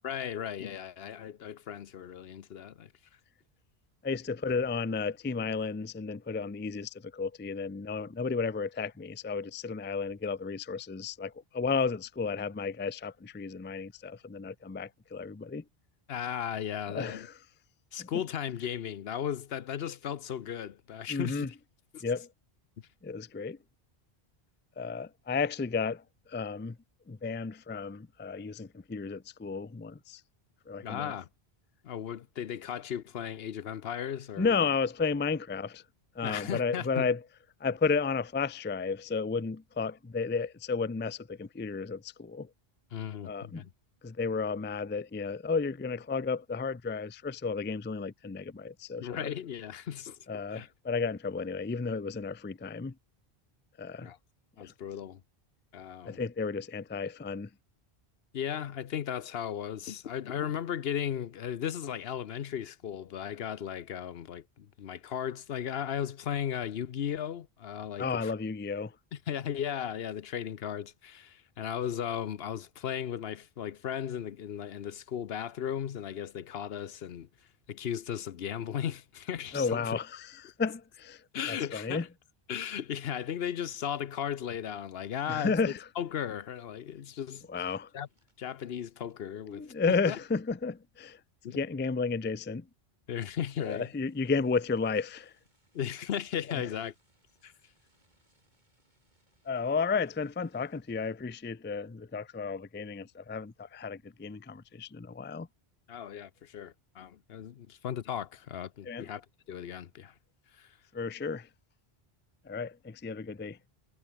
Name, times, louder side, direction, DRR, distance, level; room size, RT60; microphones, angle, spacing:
voice 1, 0.0-2.9 16.1-17.3 17.9-21.5 21.9-22.0 30.8-31.3 31.8-34.6 36.2-37.1 42.9-43.7 49.0-50.7 54.0-54.2 54.6-55.2 55.7-56.2 58.3-68.3 69.1-77.3 77.7-80.0 81.3-82.1 82.5-87.7 87.9-88.1 88.4-90.2 91.4-91.6 93.1-93.9 95.7-96.9 97.4-97.5 105.9-110.1 110.5-110.8, left 9 dB, 70° left, 1.0 m, -36 dB
voice 2, 4.0-15.6 16.9-17.3 18.0-18.1 21.1-21.5 22.0-22.3 23.0-23.6 24.8-26.8 27.1-30.2 30.7-31.1 34.4-35.8 36.2-37.2 37.6-42.5 43.2-43.7 44.0-49.3 50.3-52.9 53.8-54.1 54.6-54.7 56.0-57.5 68.0-68.9 79.5-82.0 85.3-85.9 87.5-87.9 89.5-91.2 91.5-92.7 93.6-95.3 96.5-96.6 99.5-105.5 108.9-109.1 110.9-111.5 112.5-113.6, left 4 dB, 15° left, 0.3 m, -33 dB
sound 1, 84.9-91.0 91.3-91.8 92.1-92.2 92.5-92.6 93.0-101.4 101.8-102.2 102.6-103.0, right 1 dB, 45° right, 7.4 m, -74 dB
omnidirectional pair, 1.0 m